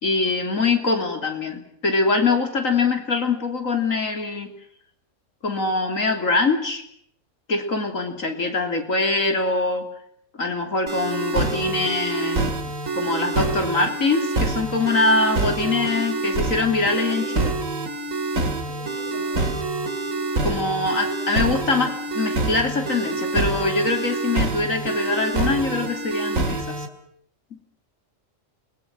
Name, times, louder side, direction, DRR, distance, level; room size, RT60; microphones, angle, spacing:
voice 1, 0.0-4.5 5.4-6.9 7.5-9.9 10.3-12.6 13.0-17.5 20.4-26.9, left 3 dB, 80° left, 5 dB, 3.7 m, -23 dB
sound 1, 10.9-26.9, right 2 dB, 80° right, 3.0 m, -26 dB
voice 2, 15.8-16.1 17.2-17.5 18.7-19.6 20.5-20.9, left 1 dB, 45° right, 1 dB, 6.7 m, -42 dB
30.0 x 22.0 x 6.2 m, 0.68 s
omnidirectional pair, 1.4 m